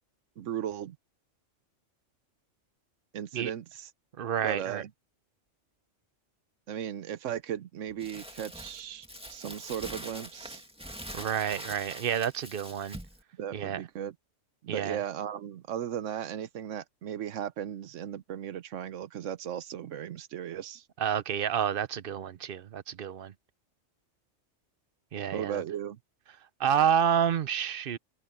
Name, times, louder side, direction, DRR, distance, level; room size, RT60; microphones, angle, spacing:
voice 1, 0.4-1.0 3.1-3.9 4.4-4.9 6.7-10.6 13.4-14.1 14.6-20.8 25.3-26.0, right 10 dB, 85° right, 1.1 m, -36 dB
voice 2, 4.2-4.8 11.1-13.0 13.5-13.8 14.7-15.0 21.0-23.3 25.1-25.6 26.6-28.0, right 8 dB, 55° right, 0.8 m, -29 dB
Crumpling crinkling, 8.0-13.2, equal, 5° right, 2.0 m, -44 dB
omnidirectional pair, 1.3 m